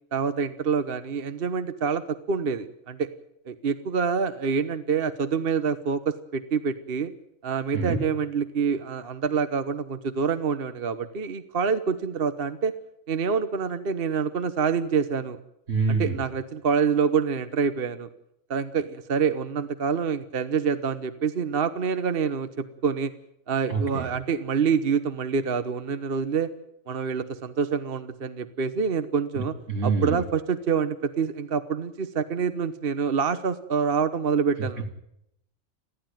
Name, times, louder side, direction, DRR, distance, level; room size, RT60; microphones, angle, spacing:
voice 1, 0.1-3.1 3.5-7.1 7.4-12.7 13.1-15.4 15.9-18.1 18.5-23.1 23.5-26.5 26.9-29.5 29.8-34.9, right 6 dB, 50° right, 11 dB, 1.2 m, -26 dB
voice 2, 15.7-16.2 23.7-24.0 29.7-30.2, right 4 dB, 85° right, 4 dB, 3.3 m, -25 dB
30.0 x 11.5 x 9.1 m, 0.78 s
omnidirectional pair, 1.2 m